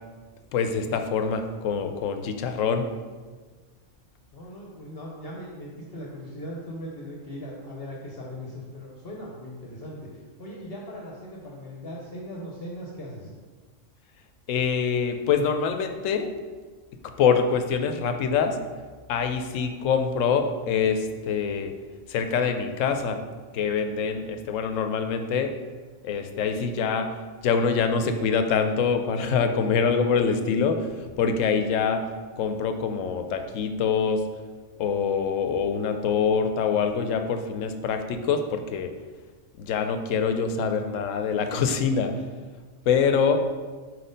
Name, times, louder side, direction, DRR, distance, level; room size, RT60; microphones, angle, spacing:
voice 1, 0.5-2.9 14.5-16.3 17.2-18.6 19.1-21.7 22.1-23.2 23.5-25.5 26.0-27.1 27.4-30.9 31.2-32.1 32.4-34.2 34.8-38.9 39.6-42.1 42.9-43.4, left 6 dB, 85° left, 7 dB, 1.0 m, -25 dB
voice 2, 4.3-10.1 10.4-13.3 43.0-43.2, equal, 55° left, -2 dB, 0.9 m, -39 dB
4.5 x 4.3 x 5.0 m, 1.4 s
omnidirectional pair, 1.3 m